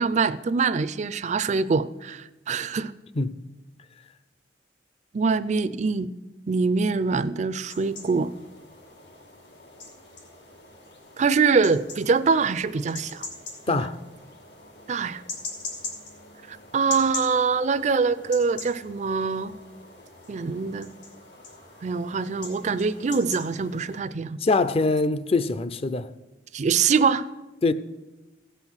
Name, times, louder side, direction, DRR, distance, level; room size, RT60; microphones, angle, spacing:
voice 1, 0.0-2.9 5.1-6.1 6.5-8.3 11.2-13.3 13.7-13.9 14.9-15.2 16.5-19.5 20.3-20.9 21.8-24.4 26.5-27.3, right 5 dB, 40° right, 0.4 m, -24 dB
sound 1, 7.7-24.0, left 3 dB, 85° left, 2.5 m, -42 dB
voice 2, 13.7-14.0 24.4-26.1 27.6-27.7, left 3 dB, 35° left, 0.5 m, -23 dB
15.5 x 5.7 x 6.2 m
head